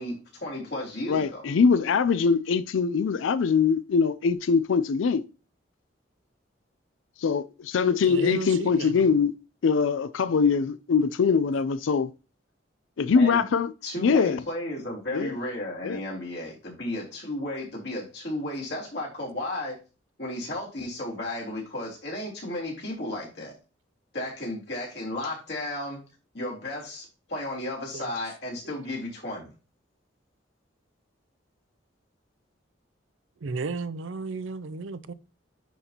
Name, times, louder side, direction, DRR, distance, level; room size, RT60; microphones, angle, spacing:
voice 1, 0.0-1.4 13.1-13.5 13.8-19.8 20.2-23.6 24.1-26.0 26.3-29.5, left 1 dB, 60° left, 3.5 m, -34 dB
voice 2, 1.1-5.2 7.2-9.3 9.6-12.1 13.0-13.7 14.0-14.4 15.1-15.3 15.8-16.0, left 5 dB, 85° left, 0.4 m, -23 dB
voice 3, 8.1-9.1 27.9-28.1 33.4-35.1, right 4 dB, 85° right, 0.5 m, -34 dB
10.5 x 4.1 x 2.9 m
head